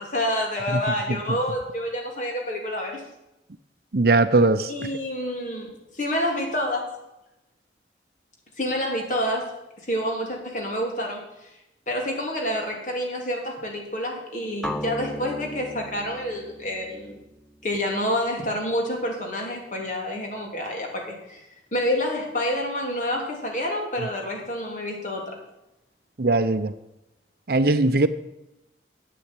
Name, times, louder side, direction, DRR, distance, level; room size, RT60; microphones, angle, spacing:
voice 1, 0.0-3.0 4.7-6.8 8.6-9.6 9.8-11.5 11.9-17.2 17.6-21.4 21.7-25.4, left 1 dB, 45° left, 0 dB, 3.3 m, -28 dB
voice 2, 3.9-4.7 26.2-26.7 27.5-28.1, right 2 dB, 55° right, 12 dB, 0.7 m, -20 dB
sound 1, 14.6-18.6, equal, ahead, 0.6 m, -37 dB
10.0 x 8.6 x 9.0 m, 0.92 s
head